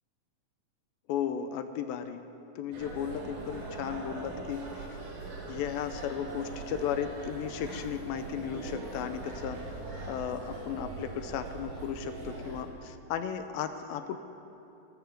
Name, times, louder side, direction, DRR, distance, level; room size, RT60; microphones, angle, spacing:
voice 1, 1.1-2.2 2.6-4.9 5.5-9.6 10.1-14.2, left 8 dB, 85° left, 9 dB, 2.4 m, -35 dB
sound 1, 2.7-12.6, right 3 dB, 60° right, 3.5 m, -41 dB
17.5 x 5.9 x 7.6 m, 2.9 s
omnidirectional pair, 4.2 m